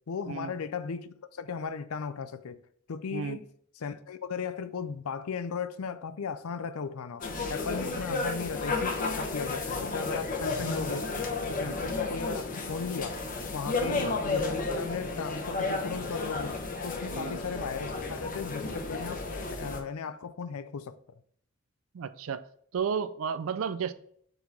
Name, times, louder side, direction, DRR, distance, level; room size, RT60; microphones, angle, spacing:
voice 1, 0.1-2.6 2.9-3.5 3.8-11.1 11.5-13.2 13.5-16.6 16.8-20.9, left 5 dB, 85° left, 0.5 m, -36 dB
sound 1, 7.2-19.8, left 3 dB, 40° left, 0.9 m, -32 dB
voice 2, 17.1-17.4 21.9-22.4 22.7-23.9, right 6 dB, 70° right, 0.4 m, -33 dB
4.7 x 3.9 x 5.3 m
head